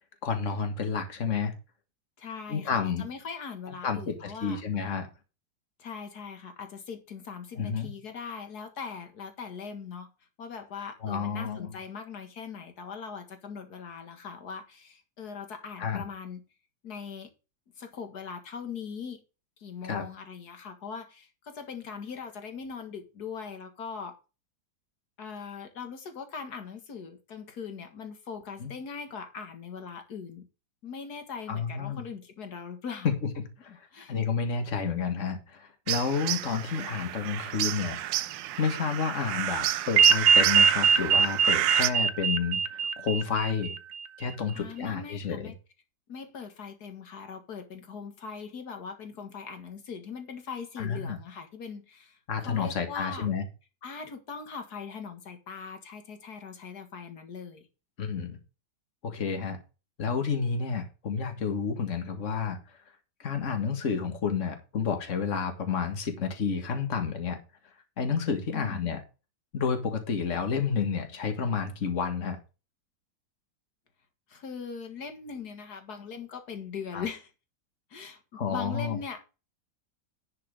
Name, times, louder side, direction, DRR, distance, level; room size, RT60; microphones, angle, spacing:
voice 1, 0.2-1.5 2.5-3.1 3.8-5.1 7.6-7.9 11.0-11.8 15.8-16.0 19.8-20.0 28.6-28.7 31.5-32.1 33.0-33.1 33.6-33.7 34.1-38.0 38.6-43.7 44.2-45.5 50.8-51.2 52.3-53.4 58.0-58.4 59.0-59.6 60.0-62.6 63.2-67.4 68.0-69.0 69.5-72.4 76.9-77.0 78.3-79.0, left 6 dB, 45° left, 1.9 m, -30 dB
voice 2, 2.2-4.6 5.8-10.1 10.4-16.4 16.8-17.3 17.8-19.2 19.6-24.1 25.2-30.4 30.8-33.1 33.7-34.1 44.5-45.5 46.1-53.3 53.8-57.7 68.5-68.9 74.3-77.3 77.9-79.2, left 6 dB, 60° left, 2.2 m, -40 dB
sound 1, 35.9-41.9, right 13 dB, 85° right, 1.3 m, -30 dB
sound 2, 40.0-44.1, right 6 dB, 60° right, 1.3 m, -22 dB
10.5 x 5.7 x 5.1 m
omnidirectional pair, 2.0 m